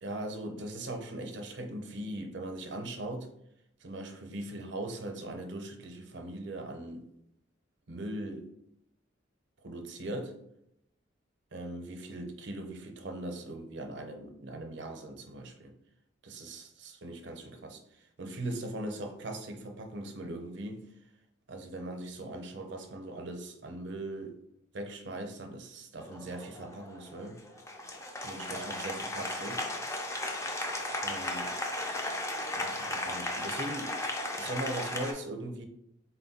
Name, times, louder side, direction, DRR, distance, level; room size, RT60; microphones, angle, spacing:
voice 1, 0.0-3.3 3.8-7.1 7.9-8.5 9.6-10.4 11.5-15.8 16.2-17.8 18.2-20.9 21.5-24.4 24.7-27.4 28.2-29.7 31.0-31.5 32.5-34.0 34.4-35.7, right 1 dB, 65° right, 0.6 m, -40 dB
Applause, 26.0-35.1, left 1 dB, 15° left, 0.4 m, -36 dB
4.1 x 2.2 x 4.0 m
head